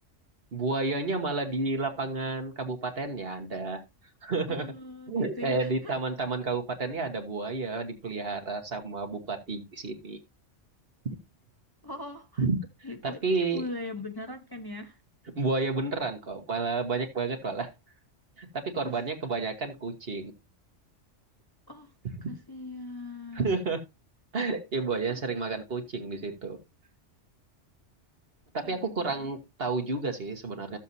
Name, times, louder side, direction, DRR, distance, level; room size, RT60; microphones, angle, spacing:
voice 1, 0.5-3.8 4.2-4.7 5.1-10.2 11.0-11.2 12.4-12.6 13.0-13.6 15.4-17.7 18.4-20.3 23.3-23.8 24.3-26.6 28.5-30.8, right 3 dB, 55° right, 1.7 m, -31 dB
voice 2, 4.5-5.9 11.8-12.4 12.8-15.0 18.8-19.0 21.7-21.9 22.3-23.6 24.9-25.2 28.6-29.4, left 2 dB, 20° left, 0.9 m, -40 dB
14.0 x 7.3 x 2.8 m
omnidirectional pair, 1.3 m